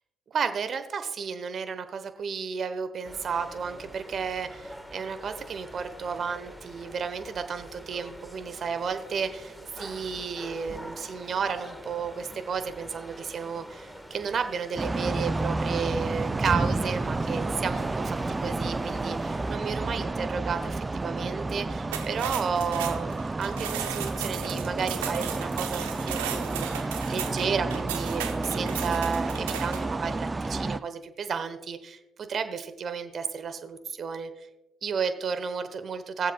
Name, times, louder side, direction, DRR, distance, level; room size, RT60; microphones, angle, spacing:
voice 1, 0.3-34.5 34.8-36.3, right 6 dB, 50° right, 9 dB, 1.0 m, -32 dB
sound 1, 3.0-19.6, equal, 5° left, 1.5 m, -44 dB
sound 2, 14.8-30.8, right 3 dB, 20° right, 0.4 m, -30 dB
sound 3, 21.8-29.9, right 10 dB, 85° right, 0.8 m, -36 dB
21.5 x 7.5 x 2.3 m, 1.0 s
hypercardioid pair, 55°, 0 cm